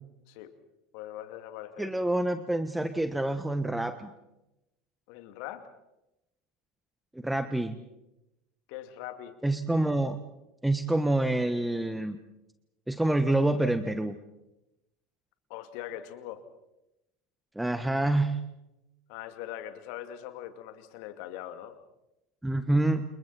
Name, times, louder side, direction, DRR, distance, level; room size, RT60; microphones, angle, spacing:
voice 1, 0.9-1.9 5.1-5.6 8.7-9.4 15.5-16.4 19.1-21.8, left 12 dB, 60° left, 9 dB, 2.4 m, -41 dB
voice 2, 1.8-4.1 7.1-7.8 9.4-10.2 10.6-12.2 12.9-14.1 17.5-18.4 22.4-23.0, right 1 dB, 5° right, 10 dB, 1.4 m, -27 dB
29.5 x 29.0 x 4.3 m, 0.92 s
figure-of-eight pair, 75°, 0 cm